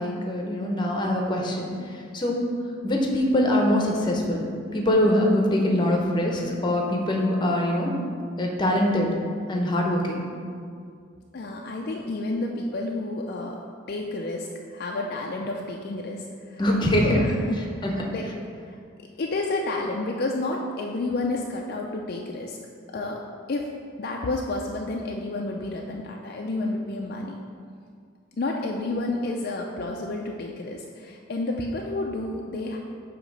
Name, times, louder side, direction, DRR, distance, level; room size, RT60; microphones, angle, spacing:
voice 1, 0.0-2.4 2.8-4.4 4.7-7.9 8.4-9.1 9.5-10.2 16.6-17.2 17.8-17.9, left 1 dB, 25° left, 0 dB, 0.8 m, -23 dB
voice 2, 11.3-13.6 13.9-16.6 16.9-17.6 18.1-18.3 18.7-18.8 19.2-22.6 22.9-23.2 23.5-23.7 24.0-27.4 28.4-32.8, left 2 dB, 50° left, 0 dB, 0.4 m, -30 dB
8.0 x 2.9 x 5.3 m, 2.2 s
head